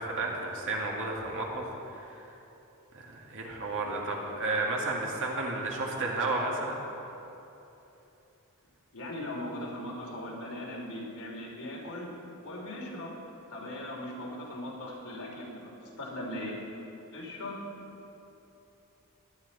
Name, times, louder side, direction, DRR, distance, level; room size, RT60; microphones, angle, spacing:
voice 1, 0.0-2.3 2.9-6.8, right 2 dB, 60° right, -2 dB, 2.2 m, -32 dB
voice 2, 8.9-12.1 12.4-13.1 13.5-15.7 16.0-16.6 17.1-17.6, left 1 dB, 80° left, -3 dB, 3.1 m, -39 dB
17.5 x 11.0 x 4.2 m, 3.0 s
head